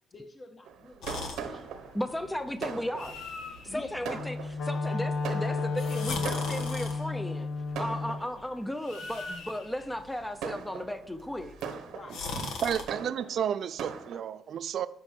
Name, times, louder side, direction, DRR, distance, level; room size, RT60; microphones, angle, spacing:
voice 1, 0.1-1.8 3.6-4.3 4.7-5.7 8.2-8.6 11.9-12.2 12.6-12.8, left 2 dB, 35° left, 5 dB, 1.4 m, -48 dB
Fireworks, 0.7-7.1 7.8-8.7 9.2-9.5 10.1-14.2, right 7 dB, 85° right, 0.9 m, -41 dB
sound 1, 1.0-12.8, left 4 dB, 85° left, 1.2 m, -42 dB
voice 2, 1.9-3.2 3.7-4.4 4.7-7.5 7.8-11.6, equal, 5° left, 10 dB, 0.6 m, -35 dB
Wind instrument woodwind instrument, 4.1-8.2, left 3 dB, 65° left, 0.8 m, -32 dB
voice 3, 12.4-14.9, right 9 dB, 65° right, 13 dB, 0.3 m, -32 dB
7.6 x 5.4 x 4.5 m, 0.74 s
cardioid pair, 90°, 0 cm